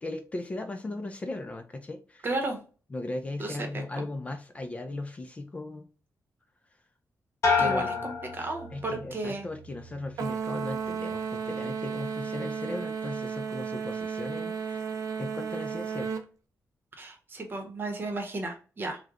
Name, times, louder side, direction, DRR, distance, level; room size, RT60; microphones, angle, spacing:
voice 1, 0.0-2.3 2.9-5.9 7.6-8.1 8.4-16.1, left 2 dB, 25° left, 6 dB, 0.3 m, -37 dB
voice 2, 2.2-2.6 3.4-3.6 4.0-4.1 7.6-9.5 17.0-19.0, right 2 dB, 35° right, 4 dB, 0.8 m, -34 dB
sound 1, 7.4-9.2 9.6-10.1, left 4 dB, 60° left, 0.9 m, -29 dB
sound 2, 10.2-16.3, right 6 dB, 90° right, 0.4 m, -33 dB
3.0 x 2.1 x 3.5 m, 0.36 s
wide cardioid pair, 150°, 6 cm